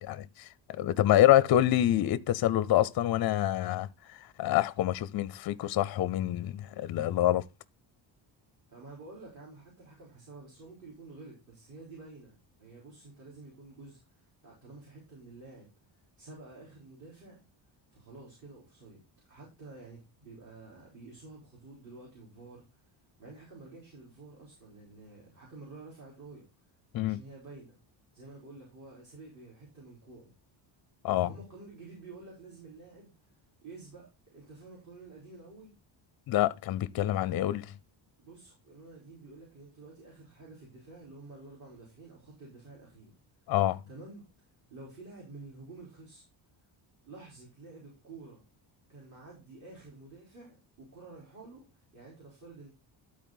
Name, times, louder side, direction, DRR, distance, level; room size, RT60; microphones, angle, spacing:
voice 1, 0.0-7.4 26.9-27.2 31.0-31.3 36.3-37.7 43.5-43.8, left 13 dB, 50° left, 0.5 m, -27 dB
voice 2, 8.7-15.7 16.2-17.4 17.9-19.0 19.3-22.8 23.2-26.5 27.0-27.7 28.1-30.3 31.1-33.1 33.6-35.8 38.2-43.1 43.9-44.3 44.7-46.2 47.0-48.4 48.9-52.7, right 3 dB, 35° right, 4.0 m, -50 dB
12.0 x 4.3 x 3.9 m
cardioid pair, 160°, 49 cm